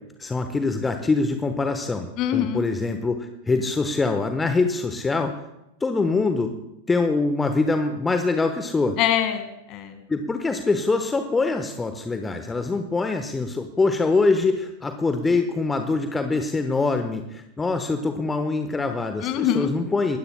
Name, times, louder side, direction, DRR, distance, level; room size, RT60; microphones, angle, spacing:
voice 1, 0.2-5.4 5.8-6.5 6.9-9.0 10.1-20.2, left 3 dB, 15° left, 7 dB, 1.1 m, -24 dB
voice 2, 2.2-2.7 9.0-10.0 19.2-19.7, left 10 dB, 40° left, 9 dB, 1.9 m, -24 dB
24.0 x 20.0 x 2.2 m, 0.85 s
figure-of-eight pair, 90°, 0 cm